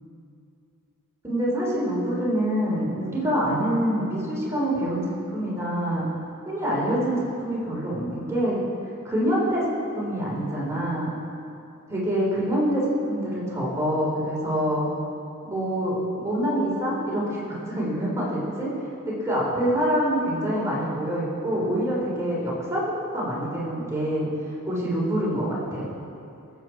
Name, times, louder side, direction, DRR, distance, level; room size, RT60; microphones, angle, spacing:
voice 1, 1.2-6.1 6.5-8.6 9.0-9.6 9.9-11.1 11.9-12.8 13.1-14.9 15.4-18.7 19.0-24.3 24.6-25.9, equal, 15° right, -6 dB, 3.9 m, -26 dB
21.0 x 8.0 x 4.7 m, 2.6 s
head